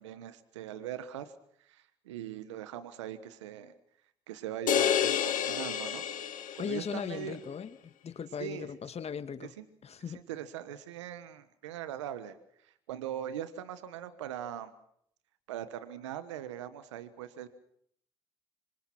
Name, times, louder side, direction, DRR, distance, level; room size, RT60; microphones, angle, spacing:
voice 1, 0.0-1.3 1.6-3.7 4.3-6.1 6.5-7.4 8.4-8.7 9.4-9.6 10.0-14.7 15.5-17.5, right 10 dB, 90° right, 12 dB, 1.3 m, -41 dB
sound 1, 4.7-7.0, left 9 dB, 60° left, 2.2 m, -29 dB
voice 2, 6.6-9.5 9.8-10.2, left 7 dB, 45° left, 10 dB, 2.3 m, -38 dB
26.5 x 24.5 x 6.0 m, 0.68 s
hypercardioid pair, 55°, 15 cm